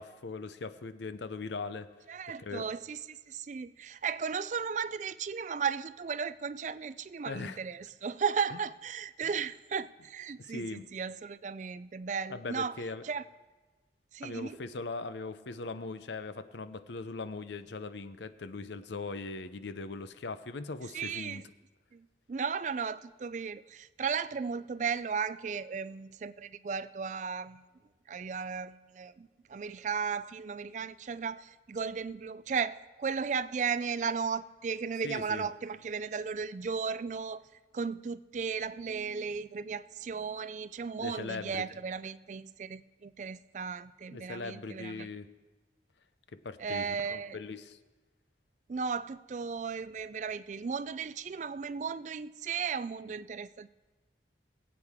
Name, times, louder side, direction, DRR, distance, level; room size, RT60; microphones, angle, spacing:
voice 1, 0.0-1.9 2.4-2.6 7.3-7.6 8.5-8.6 10.4-10.8 12.3-13.0 14.2-21.4 35.0-35.5 41.0-41.6 44.1-45.3 46.3-47.8, left 3 dB, 80° left, 12 dB, 0.6 m, -40 dB
voice 2, 2.1-13.2 14.1-14.6 20.9-21.4 21.9-27.6 28.1-37.4 37.7-45.1 46.6-47.4 48.7-53.7, right 6 dB, 40° right, 16 dB, 0.3 m, -35 dB
23.5 x 8.3 x 3.6 m, 1.2 s
head